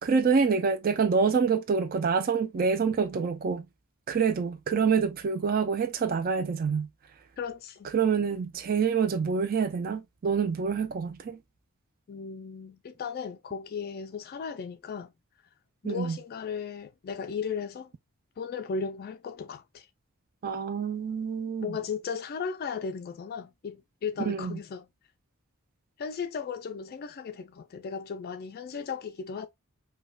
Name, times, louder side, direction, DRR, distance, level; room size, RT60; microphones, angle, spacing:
voice 1, 0.0-3.6 4.1-6.9 7.9-11.4 15.8-16.2 20.4-21.7 24.3-24.5, right 5 dB, 40° right, 0.4 m, -26 dB
voice 2, 7.4-7.9 12.1-15.1 15.8-17.9 18.4-19.9 21.6-24.9 26.0-29.5, left 6 dB, 45° left, 0.3 m, -36 dB
5.1 x 2.2 x 2.2 m
head